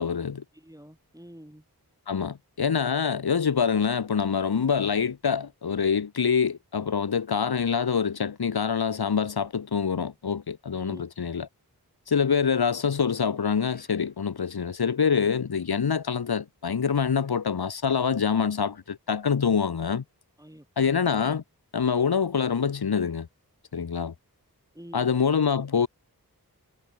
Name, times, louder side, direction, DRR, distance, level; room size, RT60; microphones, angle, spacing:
voice 1, 0.0-0.4 2.1-11.5 12.1-20.0 20.8-21.4 21.7-23.3 23.7-24.1 24.9-25.9, left 6 dB, 80° left, 0.9 m, -25 dB
voice 2, 0.5-1.6 10.8-11.1 20.4-21.4 24.7-25.1, equal, 10° right, 5.3 m, -47 dB
sound 1, 13.6-14.5 16.9-17.8, left 1 dB, 25° left, 7.5 m, -61 dB
wide cardioid pair, 45°, 38 cm